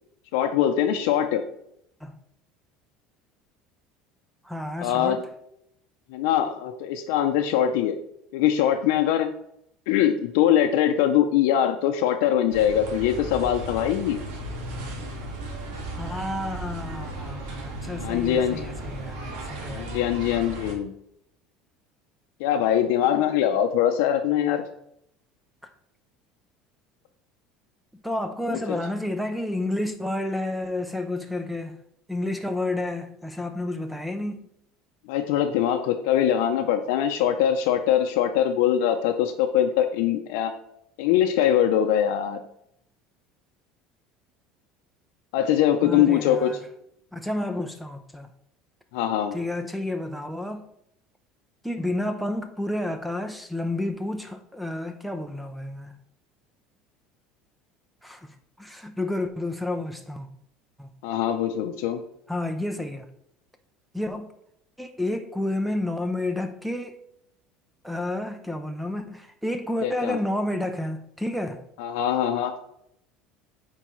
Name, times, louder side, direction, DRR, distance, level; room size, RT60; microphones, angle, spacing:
voice 1, 0.3-1.4 4.8-5.2 6.1-8.0 8.3-9.3 9.9-14.2 17.9-18.7 19.7-20.9 22.4-24.6 35.1-40.5 41.0-42.4 45.3-46.6 48.9-49.3 61.0-62.0 69.8-70.2 71.8-72.5, left 10 dB, 75° left, 0.5 m, -22 dB
voice 2, 4.4-5.2 16.0-19.9 25.6-25.7 28.0-31.8 32.1-34.4 45.8-46.6 47.1-48.3 49.3-50.7 51.6-55.9 58.0-60.3 60.8-60.9 62.3-63.1 63.9-64.3 64.8-67.0 67.8-71.6, left 1 dB, ahead, 0.4 m, -30 dB
sound 1, 12.5-20.7, right 1 dB, 80° right, 1.6 m, -35 dB
8.3 x 4.5 x 3.1 m
cardioid pair, 170°, 0 cm